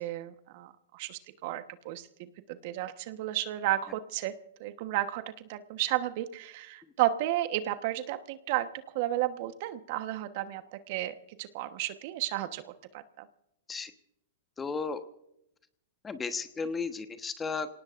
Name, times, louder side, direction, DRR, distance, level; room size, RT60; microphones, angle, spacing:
voice 1, 0.0-4.3 4.6-5.2 5.5-8.7 8.9-12.6 12.9-13.3, right 14 dB, 55° right, 10 dB, 1.2 m, -33 dB
voice 2, 14.6-15.0 16.0-17.7, left 4 dB, 15° left, 9 dB, 1.2 m, -34 dB
27.5 x 18.0 x 2.6 m, 0.80 s
hypercardioid pair, 120°, 0 cm